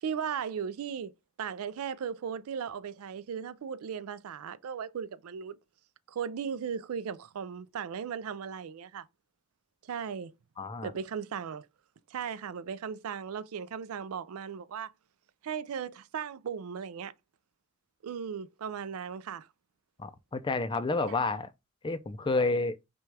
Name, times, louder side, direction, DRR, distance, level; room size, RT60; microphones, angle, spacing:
voice 1, 0.0-1.1 1.4-5.6 6.1-9.1 9.9-10.3 10.8-11.7 12.1-14.9 15.4-17.1 18.0-19.5 21.1-21.2, right 7 dB, 75° right, 0.4 m, -37 dB
voice 2, 10.6-10.9 20.0-21.5 21.8-22.8, left 3 dB, 20° left, 0.4 m, -30 dB
5.9 x 2.3 x 3.2 m
head